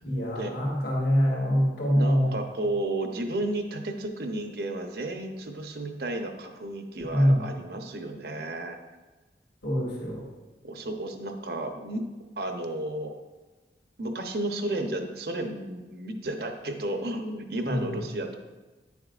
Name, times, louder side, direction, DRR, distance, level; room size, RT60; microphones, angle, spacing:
voice 1, 0.0-2.3 7.1-7.5 9.6-10.3 17.6-17.9, equal, 70° left, -5 dB, 2.5 m, -24 dB
voice 2, 1.9-8.8 10.6-12.0 12.4-13.2 14.0-18.4, right 1 dB, 65° right, 5 dB, 0.8 m, -33 dB
9.8 x 7.1 x 2.5 m, 1.2 s
head